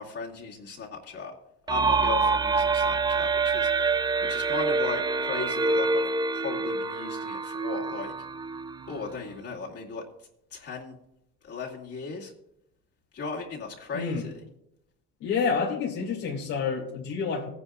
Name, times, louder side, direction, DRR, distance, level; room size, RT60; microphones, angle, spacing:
voice 1, 0.0-1.3 1.7-4.0 4.3-6.1 6.3-8.1 8.9-10.0 10.5-10.9 11.4-12.3 13.1-14.3, left 4 dB, 50° left, -3 dB, 2.4 m, -36 dB
sound 1, 1.7-9.3, right 4 dB, 15° right, 0.4 m, -26 dB
voice 2, 13.9-14.3 15.2-17.5, left 5 dB, 80° left, -3 dB, 2.4 m, -28 dB
16.5 x 9.8 x 2.4 m, 0.80 s
supercardioid pair, 80°, 29 cm